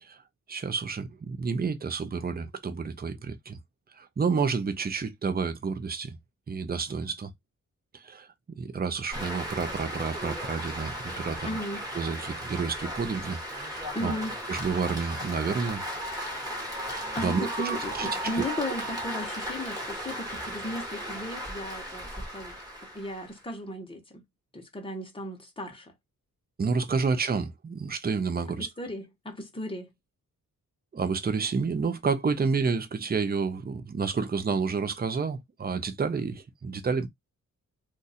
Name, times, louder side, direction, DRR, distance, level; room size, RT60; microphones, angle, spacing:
voice 1, 0.5-3.6 3.9-6.2 6.5-7.3 7.9-8.3 8.6-11.6 11.9-14.1 14.5-15.8 16.9-18.4 26.6-28.7 30.9-37.1, right 5 dB, 30° right, 0.6 m, -30 dB
sound 1, 9.1-23.4, equal, 10° right, 1.5 m, -36 dB
voice 2, 11.4-11.8 13.9-14.3 17.1-22.6 22.9-24.2 24.5-25.9 28.6-29.9, left 1 dB, 15° left, 1.0 m, -36 dB
2.5 x 2.5 x 4.1 m
wide cardioid pair, 120°, 33 cm